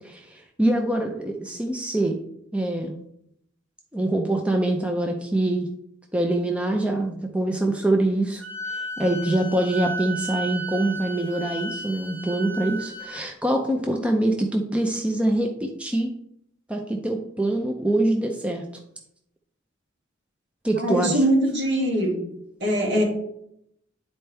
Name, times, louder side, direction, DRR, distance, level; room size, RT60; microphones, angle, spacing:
voice 1, 0.0-2.2 2.5-2.9 3.9-5.7 6.1-8.4 8.7-16.1 16.7-18.6 20.6-21.2, right 1 dB, 5° right, 2 dB, 0.5 m, -24 dB
Wind instrument woodwind instrument, 8.4-13.2, right 2 dB, 10° left, 1.5 m, -34 dB
voice 2, 20.8-22.1 22.6-23.0, right 1 dB, 60° right, -3 dB, 2.5 m, -22 dB
10.0 x 4.3 x 3.4 m, 0.75 s
head